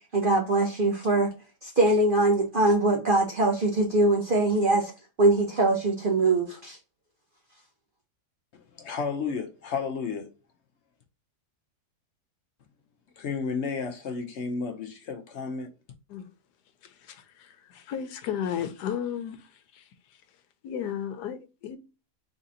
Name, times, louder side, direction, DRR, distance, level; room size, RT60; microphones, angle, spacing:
voice 1, 0.1-1.3 1.6-4.9 5.2-6.8, right 2 dB, 50° right, 0.6 m, -22 dB
voice 2, 8.5-10.3 13.2-15.7, left 5 dB, 60° left, 0.7 m, -32 dB
voice 3, 16.8-20.2 20.6-21.8, left 9 dB, 90° left, 1.2 m, -35 dB
3.9 x 2.8 x 3.7 m
omnidirectional pair, 1.7 m